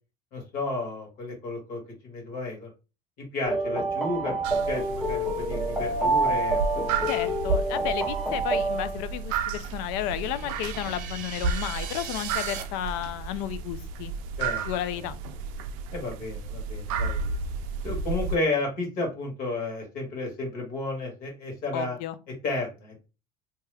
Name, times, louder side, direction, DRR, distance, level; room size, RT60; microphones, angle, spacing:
voice 1, 0.3-2.7 3.3-4.3 4.7-7.1 14.4-14.6 15.9-17.3 17.8-22.0 22.4-23.1, left 2 dB, 55° left, 1.5 m, -32 dB
sound 1, 3.4-9.2, right 2 dB, ahead, 0.5 m, -27 dB
sound 2, 4.4-18.4, right 4 dB, 90° right, 0.4 m, -33 dB
voice 2, 7.1-14.1 14.6-15.2 21.7-22.2, left 12 dB, 85° left, 0.4 m, -32 dB
sound 3, 9.9-12.6, right 9 dB, 50° right, 0.7 m, -39 dB
2.8 x 2.2 x 3.3 m
cardioid pair, 140°, 17 cm